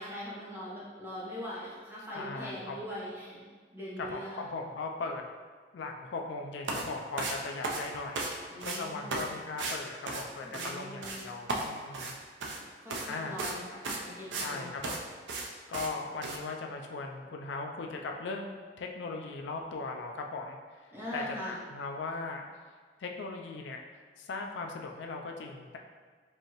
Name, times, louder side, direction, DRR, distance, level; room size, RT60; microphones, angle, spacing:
voice 1, 0.0-4.4 8.5-9.2 10.4-11.2 12.5-14.7 20.9-21.6, equal, 10° right, -8 dB, 0.9 m, -41 dB
voice 2, 2.1-2.8 4.0-5.2 5.7-12.1 13.1-13.4 14.4-15.0 15.7-22.5 23.0-25.8, left 3 dB, 80° left, 2 dB, 0.4 m, -39 dB
sound 1, 6.6-6.8 7.2-8.3 8.6-8.8 9.1-9.3 9.6-9.8 10.1-10.7 11.0-11.2 11.5-12.6 12.9-13.1 13.4-13.6 13.8-14.5 14.8-15.0 15.3-15.5 15.7-15.9 16.2-16.4, right 3 dB, 85° right, 0.5 m, -35 dB
4.6 x 2.7 x 3.0 m, 1.5 s
head